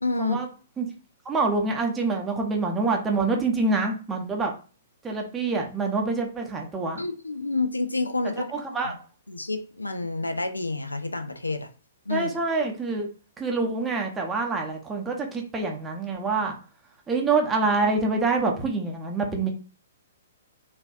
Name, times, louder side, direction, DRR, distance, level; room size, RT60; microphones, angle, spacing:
voice 1, 0.0-0.4 7.0-8.5 8.8-9.0 9.3-11.7 12.1-12.3, left 3 dB, 80° left, 8 dB, 0.4 m, -29 dB
voice 2, 1.2-4.5 5.0-7.0 8.5-8.9 12.1-13.1 13.4-16.6 17.1-19.5, right 3 dB, 15° right, 1 dB, 0.6 m, -26 dB
3.9 x 2.5 x 2.3 m, 0.37 s
figure-of-eight pair, 115°, 0 cm